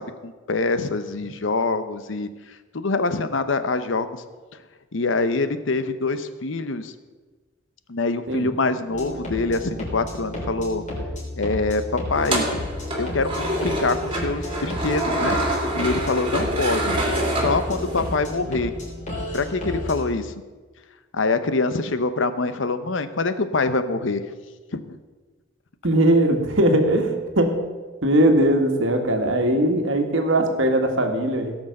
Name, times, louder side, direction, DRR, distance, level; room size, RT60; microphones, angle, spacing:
voice 1, 0.0-2.3 2.7-4.2 4.9-6.9 7.9-10.8 11.4-11.8 12.1-12.5 13.0-15.4 15.7-17.0 17.3-18.7 19.3-20.3 21.1-24.3 24.7-25.0, left 3 dB, 65° left, 11 dB, 0.8 m, -25 dB
sound 1, 8.9-20.1, left 1 dB, 40° left, 3.7 m, -32 dB
sound 2, 12.1-18.2, right 1 dB, 25° right, 2.2 m, -26 dB
voice 2, 25.8-27.6 28.0-31.6, right 1 dB, 70° right, 4 dB, 1.7 m, -20 dB
17.0 x 6.1 x 6.5 m, 1.3 s
head